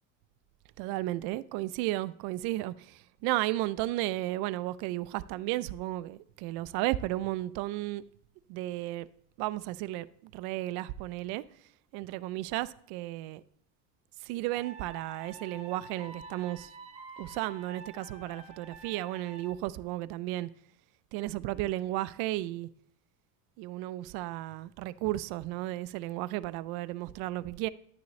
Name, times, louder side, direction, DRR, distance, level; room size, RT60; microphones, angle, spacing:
voice 1, 0.8-8.0 8.5-9.1 9.4-11.4 11.9-13.4 14.2-16.7 17.2-20.5 21.1-22.7 23.6-27.7, right 16 dB, 60° right, 0.5 m, -34 dB
sound 1, 14.5-19.5, right 3 dB, 15° right, 1.0 m, -48 dB
10.5 x 9.6 x 3.1 m
cardioid pair, 145°, 42 cm